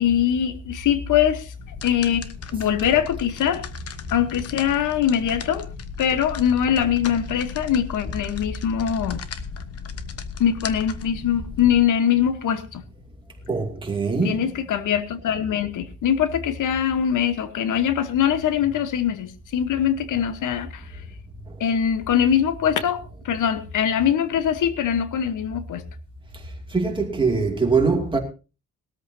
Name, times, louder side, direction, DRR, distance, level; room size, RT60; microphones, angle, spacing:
voice 1, 0.0-1.5 1.8-3.7 4.1-5.7 6.0-9.2 10.4-12.8 14.2-21.0 21.6-25.8, left 9 dB, 65° left, 1.2 m, -22 dB
sound 1, 1.6-11.8, left 6 dB, 45° left, 1.1 m, -36 dB
voice 2, 13.5-14.5 26.7-28.2, right 4 dB, 15° right, 2.6 m, -22 dB
20.0 x 13.5 x 2.8 m
cardioid pair, 170°, 33 cm